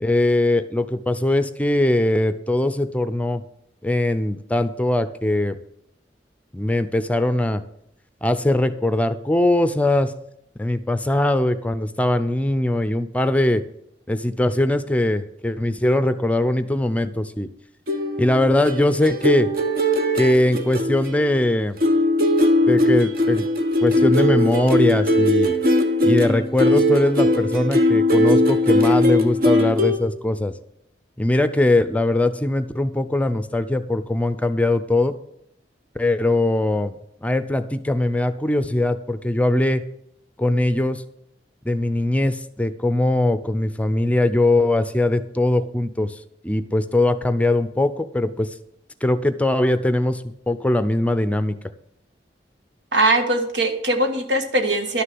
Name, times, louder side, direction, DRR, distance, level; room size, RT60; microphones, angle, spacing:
voice 1, 0.0-3.4 3.8-5.6 6.5-7.6 8.2-10.1 10.6-13.6 14.1-17.5 18.2-19.5 20.1-21.8 22.7-23.5 23.8-25.6 26.0-30.5 31.2-35.1 35.9-36.9 37.2-39.8 40.4-41.0 41.6-46.2 46.4-48.5 49.0-51.6, left 1 dB, 10° left, 12 dB, 0.5 m, -21 dB
sound 1, 17.9-21.5 21.8-30.0, left 1 dB, 55° right, 1.2 m, -19 dB
voice 2, 52.9-55.0, right 2 dB, 85° right, 6 dB, 1.7 m, -20 dB
11.5 x 6.6 x 7.7 m, 0.74 s
head